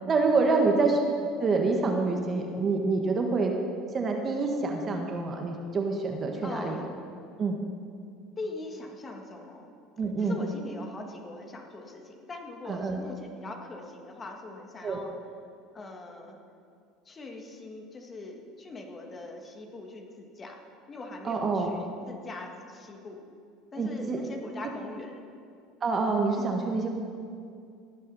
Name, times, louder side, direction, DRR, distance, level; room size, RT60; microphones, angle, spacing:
voice 1, 0.1-1.0 1.4-3.5 3.9-6.8 7.4-7.6 10.0-10.4 12.7-13.0 14.8-15.0 21.2-21.8 23.8-24.2 25.8-26.9, right 3 dB, 35° right, 2 dB, 1.4 m, -27 dB
voice 2, 6.4-6.9 8.4-9.7 10.2-15.1 15.7-16.4 17.1-20.6 20.9-23.2 23.7-25.2, left 2 dB, 30° left, 2 dB, 1.8 m, -41 dB
17.5 x 6.5 x 5.5 m, 2.4 s
supercardioid pair, 95°, 0 cm